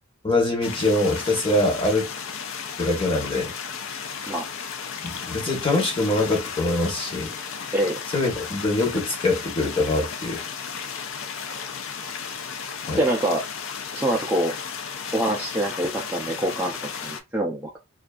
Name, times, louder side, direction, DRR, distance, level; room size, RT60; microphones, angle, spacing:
voice 1, 0.2-2.1 2.8-3.5 5.0-7.3 8.1-10.4 12.9-13.0, left 2 dB, 25° left, 0.8 m, -23 dB
sound 1, 0.6-17.2, left 6 dB, 60° left, 0.4 m, -34 dB
voice 2, 13.0-13.5 13.9-14.5 15.1-17.8, right 1 dB, 10° right, 0.3 m, -25 dB
2.5 x 2.3 x 2.3 m
head